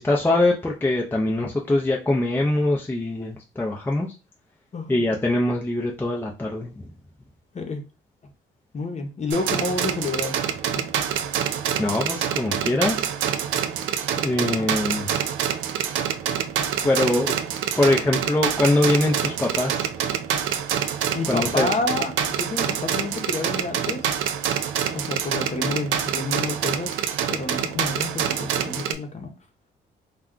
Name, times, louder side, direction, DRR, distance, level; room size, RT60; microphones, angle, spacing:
voice 1, 0.0-4.1 4.9-6.8 11.8-13.0 14.2-15.1 16.8-17.4 17.8-19.9 21.3-21.7, left 2 dB, 10° left, -1 dB, 0.5 m, -23 dB
voice 2, 7.5-7.9 8.7-10.3 10.7-10.8 14.6-14.7 21.1-24.1 24.9-29.3, left 3 dB, 35° left, 4 dB, 0.8 m, -29 dB
sound 1, 9.3-28.9, right 9 dB, 75° right, 0.4 m, -26 dB
2.3 x 2.2 x 3.7 m, 0.30 s
cardioid pair, 90°, 20 cm